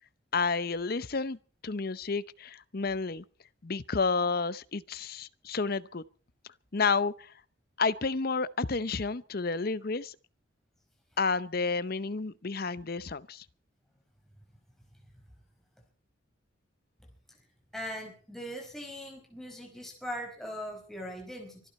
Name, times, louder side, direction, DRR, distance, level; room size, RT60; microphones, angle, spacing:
voice 1, 0.3-1.4 1.6-3.2 3.6-6.0 6.7-7.3 7.8-10.2 11.2-13.4, left 4 dB, 45° left, 0.7 m, -30 dB
voice 2, 17.7-21.6, equal, ahead, 4.8 m, -40 dB
25.0 x 12.0 x 4.3 m
head